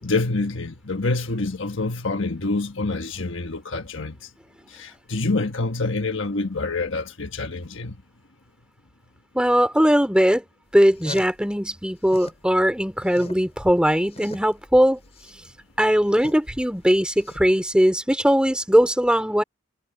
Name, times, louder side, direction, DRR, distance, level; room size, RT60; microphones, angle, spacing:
voice 1, 0.0-4.2 4.7-8.0, left 3 dB, 65° left, 1.4 m, -26 dB
voice 2, 9.3-10.4 10.7-15.0 15.8-19.4, equal, 5° right, 3.4 m, -19 dB
sound 1, 10.7-12.5 12.8-17.8, left 2 dB, 30° left, 5.3 m, -42 dB
head